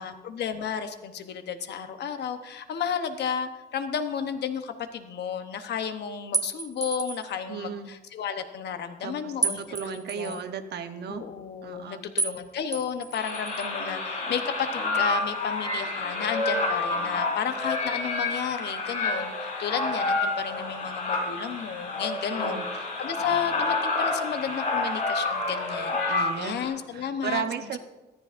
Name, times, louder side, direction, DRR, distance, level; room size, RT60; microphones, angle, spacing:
voice 1, 0.0-9.9 10.2-10.4 11.1-22.7 23.0-27.7, left 7 dB, 90° left, 9 dB, 0.9 m, -32 dB
sound 1, 6.3-7.3 9.4-10.4 12.2-12.4 12.7-13.7, right 3 dB, 20° right, 0.9 m, -31 dB
voice 2, 7.5-7.9 9.0-11.2 11.6-12.0 22.3-22.7 26.1-27.8, right 7 dB, 75° right, 8 dB, 0.9 m, -35 dB
sound 2, 13.1-26.7, left 2 dB, 50° left, 4.8 m, -29 dB
14.5 x 14.0 x 2.5 m, 1.1 s
cardioid pair, 125°, 17 cm